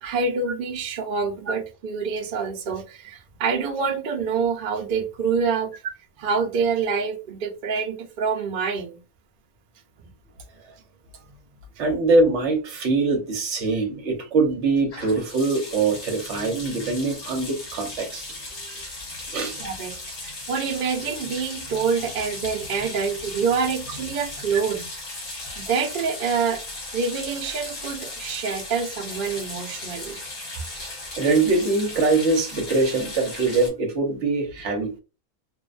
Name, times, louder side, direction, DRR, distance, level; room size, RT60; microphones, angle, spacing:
voice 1, 0.0-5.7 6.2-9.0 18.6-18.9 19.6-20.0 20.2-24.8 25.6-26.6 26.9-30.2, right 5 dB, 85° right, 0.4 m, -26 dB
voice 2, 11.8-18.2 19.3-19.6 31.2-34.9, right 3 dB, 60° right, 0.9 m, -23 dB
sound 1, 14.9-33.7, left 2 dB, 65° left, 1.2 m, -36 dB
2.5 x 2.1 x 2.4 m
omnidirectional pair, 1.5 m